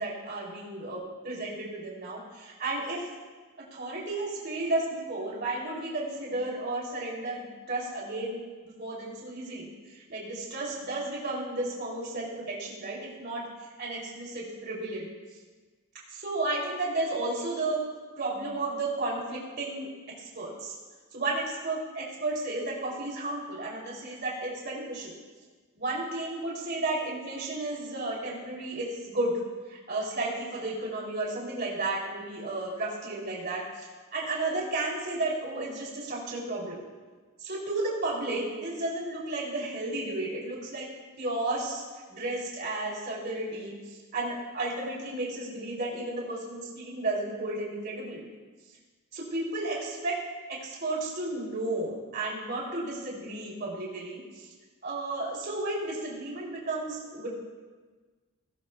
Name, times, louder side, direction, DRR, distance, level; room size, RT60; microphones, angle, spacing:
voice 1, 0.0-3.0 3.7-8.4 8.6-9.7 9.9-13.4 13.8-15.1 16.1-17.8 18.2-19.9 20.3-20.7 21.1-25.1 25.8-29.4 29.7-36.8 37.4-40.9 41.2-41.8 42.1-48.2 49.1-50.2 50.5-54.5 54.8-57.3, right 2 dB, 45° right, -4 dB, 3.0 m, -33 dB
16.5 x 16.0 x 2.3 m, 1.4 s
head